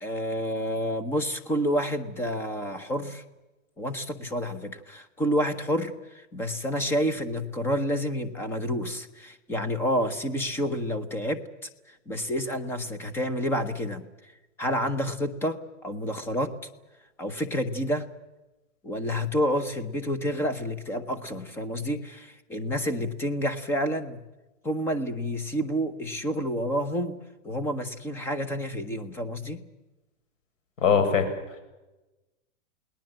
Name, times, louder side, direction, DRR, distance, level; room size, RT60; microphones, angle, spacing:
voice 1, 0.0-3.2 3.8-14.3 14.6-16.5 17.2-18.1 18.8-24.2 24.6-27.1 27.4-29.6, equal, 5° left, 12 dB, 0.8 m, -29 dB
voice 2, 30.8-31.6, left 6 dB, 85° left, 7 dB, 7.5 m, -23 dB
29.0 x 19.5 x 7.7 m, 1.1 s
supercardioid pair, 175°, 37 cm